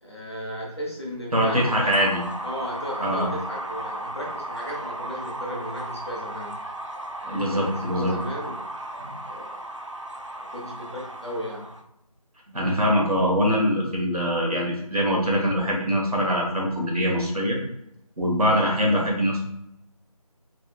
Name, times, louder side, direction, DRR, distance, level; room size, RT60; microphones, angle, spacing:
voice 1, 0.0-2.0 2.4-6.6 7.2-8.6 9.2-9.6 10.5-11.7, equal, 45° left, -3 dB, 0.9 m, -35 dB
voice 2, 1.3-2.2 3.0-3.3 7.3-8.1 9.0-9.1 12.5-17.6 18.2-19.4, equal, 70° right, -2 dB, 1.1 m, -23 dB
sound 1, 1.5-11.8, right 1 dB, 55° right, 0.4 m, -35 dB
3.2 x 2.3 x 3.2 m, 0.80 s
figure-of-eight pair, 175°, 19 cm